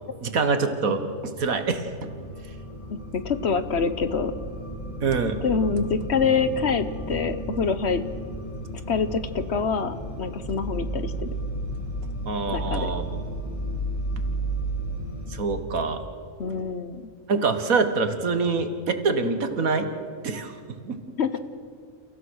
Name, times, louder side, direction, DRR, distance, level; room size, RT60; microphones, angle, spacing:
voice 1, 0.2-2.1 5.0-5.4 12.3-13.0 15.3-16.0 17.3-19.9 20.2-20.6 20.8-21.0, right 4 dB, 75° right, 8 dB, 1.9 m, -25 dB
sound 1, 1.4-15.4, right 1 dB, 20° left, 5.1 m, -33 dB
voice 2, 3.1-4.3 5.4-8.0 8.9-11.3 12.5-12.9 16.4-17.0 21.2-21.4, left 5 dB, 55° left, 11 dB, 1.1 m, -25 dB
30.0 x 15.5 x 6.4 m, 2.2 s
omnidirectional pair, 1.5 m